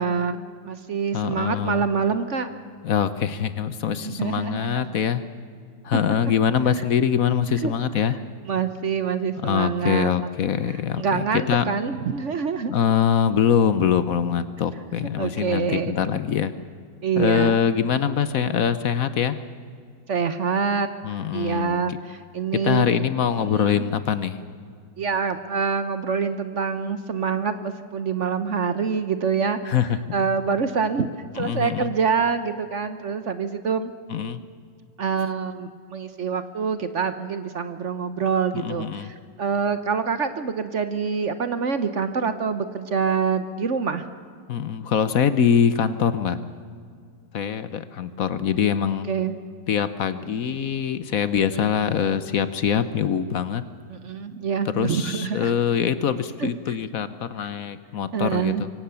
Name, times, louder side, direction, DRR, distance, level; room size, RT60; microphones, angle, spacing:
voice 1, 0.0-2.5 4.0-4.9 7.6-7.7 8.5-10.3 10.7-12.7 15.2-15.9 17.0-17.6 20.1-20.9 21.3-23.0 23.5-23.8 25.0-29.6 30.1-33.9 35.0-44.1 49.1-49.4 51.4-51.8 53.9-55.5 56.4-56.8 58.1-58.6, right 6 dB, 50° right, 11 dB, 1.0 m, -26 dB
voice 2, 1.1-1.9 2.8-5.2 5.8-8.2 9.4-11.8 12.7-16.5 17.2-19.4 21.0-22.0 22.6-24.4 29.6-30.0 31.4-31.9 34.1-34.4 38.5-39.1 44.5-46.4 47.3-49.1 49.7-53.6 54.7-58.7, left 8 dB, 60° left, 13 dB, 1.1 m, -23 dB
24.0 x 17.5 x 7.0 m, 2.1 s
omnidirectional pair, 2.0 m